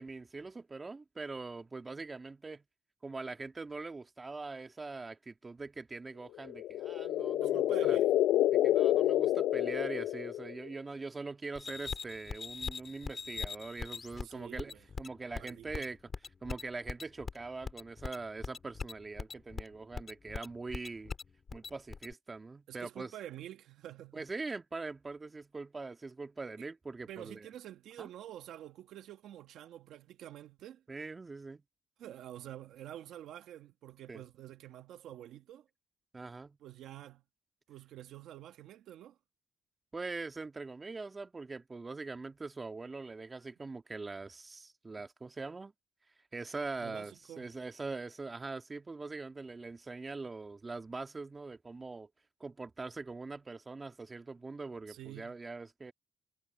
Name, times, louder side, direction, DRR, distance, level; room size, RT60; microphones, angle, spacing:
voice 1, 0.0-2.6 3.0-8.0 8.5-16.0 16.4-21.1 21.5-23.1 24.1-27.5 28.0-28.1 30.9-31.6 34.1-34.2 36.1-36.6 39.9-45.7 46.3-52.1 52.4-55.9, right 3 dB, 25° right, 1.9 m, -42 dB
sound 1, 6.4-10.7, left 13 dB, 90° left, 0.6 m, -28 dB
voice 2, 7.4-8.1 14.2-14.8 15.4-15.9 22.7-24.3 27.1-30.8 32.0-35.7 36.6-37.2 37.7-39.2 46.8-47.5 54.9-55.4, right 12 dB, 80° right, 1.5 m, -48 dB
sound 2, 11.6-22.1, left 5 dB, 40° left, 4.0 m, -41 dB
cardioid pair, 90°, 0 cm